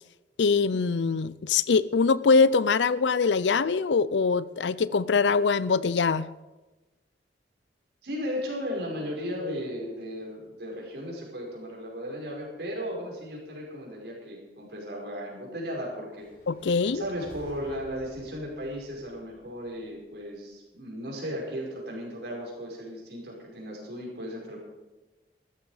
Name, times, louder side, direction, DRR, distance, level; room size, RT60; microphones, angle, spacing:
voice 1, 0.4-6.3 16.5-17.0, left 4 dB, 85° left, 18 dB, 0.5 m, -23 dB
voice 2, 8.0-16.3 16.9-24.6, equal, 70° right, -2 dB, 5.1 m, -36 dB
sound 1, 16.1-20.4, equal, 50° left, 5.6 m, -52 dB
14.5 x 13.0 x 4.9 m, 1.1 s
head